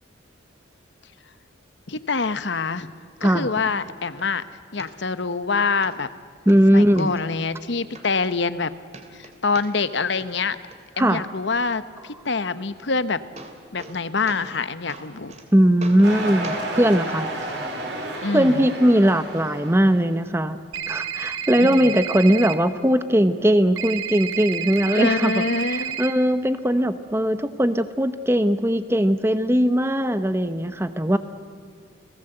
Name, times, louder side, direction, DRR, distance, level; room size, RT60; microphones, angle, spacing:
voice 1, 1.9-2.9 3.2-4.4 4.7-6.1 6.7-8.7 9.1-10.6 11.0-13.2 13.7-15.3 18.2-18.7 21.6-22.0 24.9-26.0, left 4 dB, 65° left, 13 dB, 1.0 m, -25 dB
sound 1, 2.2-2.3 2.8-2.9 3.3-3.4 3.8-4.3 4.8-5.4 5.8-5.9 6.3-7.1 7.6-7.7 7.9-8.6 8.9-10.0 10.2-10.8 12.8-12.9 13.1-14.0 14.3-14.6 14.9-15.5 15.8-16.2 16.4-16.7 17.4-17.5 18.4-18.5, right 3 dB, 35° right, 2.7 m, -41 dB
voice 2, 6.5-7.2 11.0-11.3 15.5-17.3 18.3-20.6 20.9-31.2, equal, 10° right, 11 dB, 0.9 m, -19 dB
sound 2, 16.0-20.1, right 1 dB, 60° right, 4.7 m, -31 dB
sound 3, 20.7-22.5 23.8-26.1, right 9 dB, 90° right, 1.6 m, -30 dB
30.0 x 18.0 x 7.9 m, 2.1 s
head